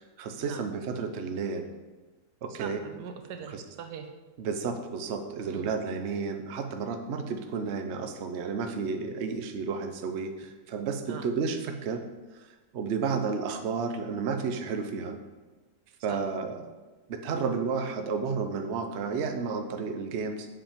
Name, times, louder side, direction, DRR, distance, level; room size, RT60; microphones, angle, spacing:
voice 1, 0.0-1.7 2.4-2.8 3.5-3.6 4.4-12.0 12.7-15.2 16.0-16.6 17.1-20.5, right 5 dB, 55° right, 6 dB, 0.9 m, -32 dB
voice 2, 2.6-4.1 5.5-5.7 11.1-11.3 16.1-16.2, right 7 dB, 85° right, 7 dB, 1.3 m, -41 dB
7.5 x 5.8 x 5.1 m, 1.2 s
omnidirectional pair, 1.8 m